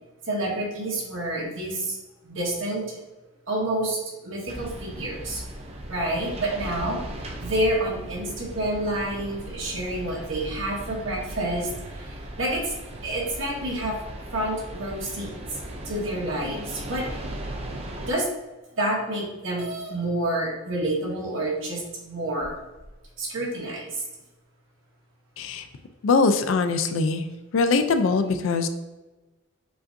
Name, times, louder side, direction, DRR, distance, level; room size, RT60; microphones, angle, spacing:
voice 1, 0.3-2.0 2.2-3.0 3.5-5.4 5.8-7.0 7.4-12.7 13.0-14.0 14.3-15.6 15.8-17.2 18.1-18.3 18.8-22.6 23.2-24.0, right 1 dB, 65° right, -2 dB, 1.2 m, -28 dB
sound 1, 4.5-18.1, right 1 dB, 25° right, 0.4 m, -37 dB
sound 2, 19.6-19.9 20.9-21.0 21.7-21.8 22.4-23.1, right 2 dB, 80° right, 1.0 m, -40 dB
voice 2, 26.0-27.3 27.5-28.7, left 4 dB, 65° left, 9 dB, 0.3 m, -22 dB
6.8 x 2.6 x 2.5 m, 1.1 s
head